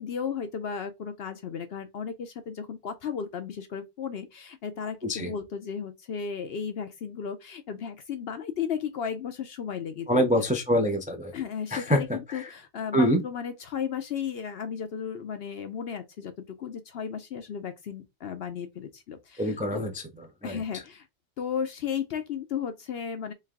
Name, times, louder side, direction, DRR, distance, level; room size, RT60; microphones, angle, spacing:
voice 1, 0.0-10.3 11.3-16.3 16.6-19.8 20.4-21.1 21.4-23.3, left 7 dB, 60° left, 0.7 m, -34 dB
voice 2, 10.1-11.3 11.7-12.0 12.3-12.4 12.9-13.2 19.4-19.9 20.4-20.6, equal, 10° right, 0.3 m, -24 dB
3.2 x 3.2 x 3.5 m
omnidirectional pair, 1.4 m